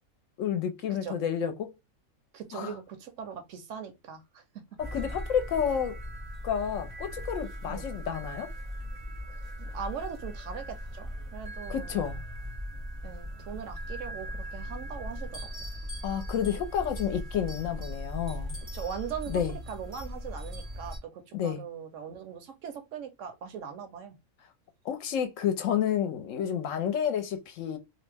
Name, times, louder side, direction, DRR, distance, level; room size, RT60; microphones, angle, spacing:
voice 1, 0.4-1.8 2.5-2.7 4.8-6.0 6.4-8.5 11.7-12.2 16.0-18.6 19.3-19.5 21.3-21.6 24.8-27.8, left 8 dB, 70° left, 0.9 m, -30 dB
voice 2, 2.3-4.6 7.7-7.9 9.6-12.0 13.0-15.7 18.7-19.4 19.7-24.2, right 7 dB, 70° right, 0.9 m, -40 dB
sound 1, 4.8-21.0, equal, 35° right, 0.5 m, -39 dB
2.6 x 2.0 x 3.3 m
omnidirectional pair, 1.5 m